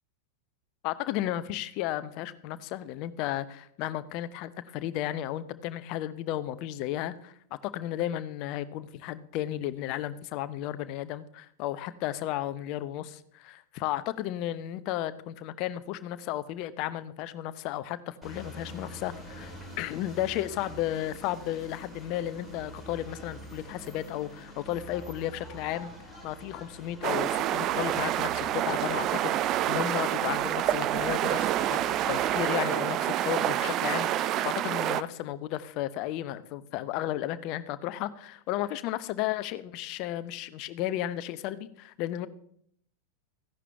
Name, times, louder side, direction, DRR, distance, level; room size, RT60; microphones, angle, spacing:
voice 1, 0.8-7.3 7.6-25.9 26.2-42.3, left 13 dB, 40° left, 15 dB, 0.7 m, -34 dB
sound 1, 18.2-32.4, right 1 dB, 10° right, 3.9 m, -46 dB
sound 2, 27.0-35.0, right 12 dB, 35° right, 0.5 m, -28 dB
15.5 x 11.0 x 3.5 m, 0.69 s
figure-of-eight pair, 90°, 0 cm